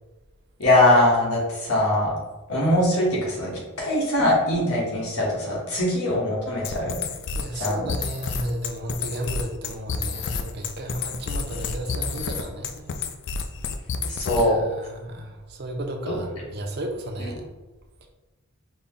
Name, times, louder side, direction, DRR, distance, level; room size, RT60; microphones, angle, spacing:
voice 1, 0.6-2.1 2.5-3.5 3.8-6.9 7.5-7.9 14.1-14.6 16.1-16.2 17.2-17.3, left 1 dB, 85° left, -5 dB, 1.4 m, -22 dB
sound 1, 6.6-14.6, left 5 dB, 55° left, 0.3 m, -30 dB
voice 2, 7.3-12.9 14.3-17.5, right 1 dB, 45° right, 3 dB, 0.5 m, -33 dB
4.0 x 2.2 x 3.8 m, 1.1 s
head